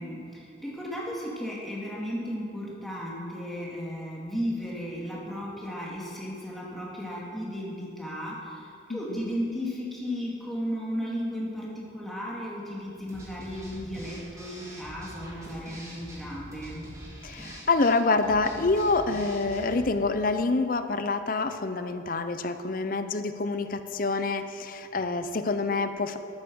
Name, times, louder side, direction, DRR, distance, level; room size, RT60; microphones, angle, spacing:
voice 1, 0.0-16.9, equal, ahead, -5 dB, 2.3 m, -35 dB
voice 2, 8.9-9.2 17.2-26.2, left 3 dB, 45° left, 10 dB, 0.6 m, -27 dB
sound 1, 13.1-19.9, right 1 dB, 15° right, 2.0 m, -44 dB
11.5 x 9.6 x 6.2 m, 2.7 s
head